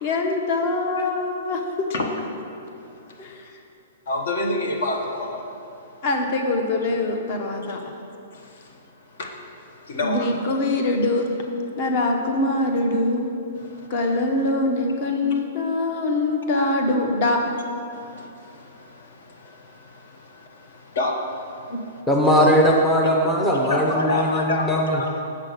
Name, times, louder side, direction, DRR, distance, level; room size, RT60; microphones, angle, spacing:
voice 1, 0.0-1.9 3.2-3.5 6.0-7.8 10.0-11.3 11.8-13.2 13.9-17.5 21.7-21.8, left 2 dB, 40° left, 3 dB, 0.9 m, -23 dB
voice 2, 4.1-5.5 8.3-8.7 9.1-9.3 9.8-10.5 13.6-13.9 15.3-15.4 17.9-22.0 22.4-22.6 23.7-25.2, left 2 dB, 65° left, 2 dB, 1.3 m, -29 dB
voice 3, 22.1-25.0, equal, 10° left, 0 dB, 0.6 m, -19 dB
7.5 x 5.9 x 6.6 m, 2.7 s
hypercardioid pair, 165°, 0 cm